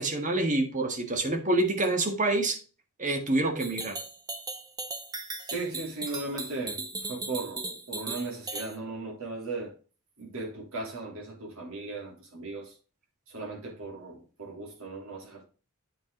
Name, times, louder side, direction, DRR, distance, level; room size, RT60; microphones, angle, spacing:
voice 1, 0.0-2.6 3.0-4.0, right 2 dB, 35° right, 1.7 m, -27 dB
sound 1, 3.6-8.8, right 3 dB, 15° right, 1.1 m, -37 dB
voice 2, 5.5-9.7 10.2-12.7 13.3-15.5, right 3 dB, 65° right, 3.3 m, -37 dB
8.6 x 5.0 x 3.8 m
head